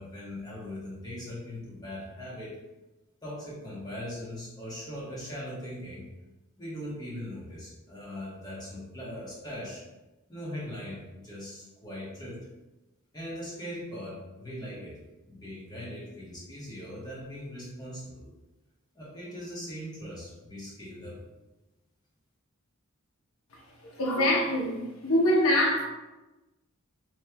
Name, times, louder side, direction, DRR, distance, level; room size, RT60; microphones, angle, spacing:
voice 1, 0.0-2.6 3.2-6.1 6.6-9.8 10.3-12.5 13.1-15.0 15.3-18.3 18.9-21.2, left 1 dB, 20° left, -7 dB, 1.1 m, -40 dB
voice 2, 23.8-24.8 25.0-25.8, left 1 dB, 85° left, -2 dB, 0.8 m, -24 dB
4.3 x 3.2 x 2.2 m, 1.1 s
head